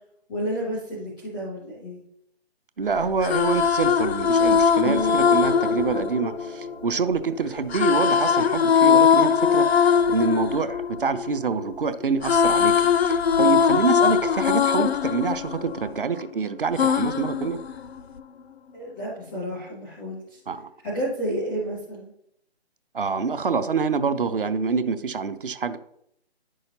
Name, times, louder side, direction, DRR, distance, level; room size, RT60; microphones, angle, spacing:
voice 1, 0.3-2.0 18.7-20.4 20.8-22.1, equal, ahead, -5 dB, 0.5 m, -31 dB
voice 2, 2.8-17.6 20.5-20.7 22.9-25.8, right 5 dB, 55° right, 12 dB, 0.7 m, -26 dB
sound 1, 3.0-7.1 7.7-11.8 12.0-16.3 16.8-18.2, left 7 dB, 75° left, 0.5 m, -21 dB
Harp, 4.8-12.3 12.6-13.7 13.9-14.6, left 2 dB, 80° right, 1.9 m, -38 dB
10.0 x 6.3 x 2.8 m, 0.74 s
figure-of-eight pair, 150°, 32 cm